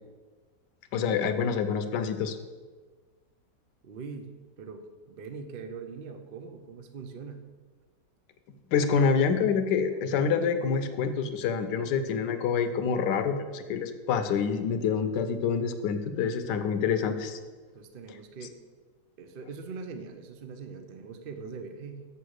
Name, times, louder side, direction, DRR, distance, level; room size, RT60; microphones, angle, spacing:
voice 1, 0.9-2.4 8.7-17.4, left 6 dB, 75° left, 8 dB, 1.3 m, -27 dB
voice 2, 3.8-4.3 4.6-7.4 17.7-18.6 19.2-22.1, right 5 dB, 65° right, 7 dB, 0.5 m, -42 dB
7.1 x 6.8 x 6.4 m, 1.4 s
omnidirectional pair, 1.9 m